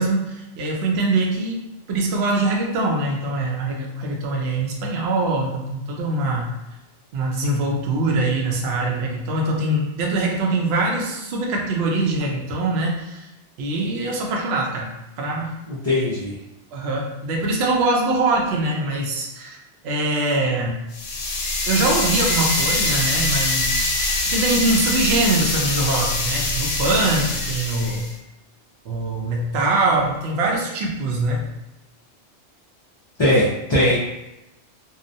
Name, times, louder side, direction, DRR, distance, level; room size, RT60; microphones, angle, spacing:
voice 1, 0.0-1.6 1.9-6.5 7.1-13.3 13.6-14.9 15.2-15.6 16.7-19.6 19.8-20.8 21.7-23.9 24.3-28.0 28.8-31.4, right 2 dB, 65° right, -1 dB, 0.8 m, -23 dB
voice 2, 15.7-16.4 33.2-33.9, left 1 dB, 45° left, -10 dB, 0.3 m, -19 dB
sound 1, 20.9-28.1, left 2 dB, 75° left, 0.9 m, -23 dB
2.7 x 2.0 x 2.6 m, 0.94 s
omnidirectional pair, 1.3 m